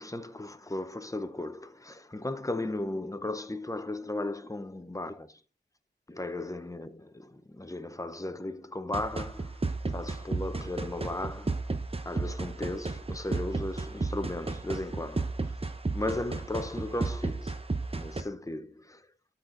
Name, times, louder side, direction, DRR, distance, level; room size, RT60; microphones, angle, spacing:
voice 1, 0.0-5.4 6.1-11.7 12.0-15.6 15.9-17.6 17.9-19.1, left 2 dB, 15° left, 0.9 m, -36 dB
sound 1, 8.9-18.2, right 3 dB, 30° right, 0.9 m, -33 dB
12.5 x 4.3 x 4.0 m
wide cardioid pair, 60°, 19 cm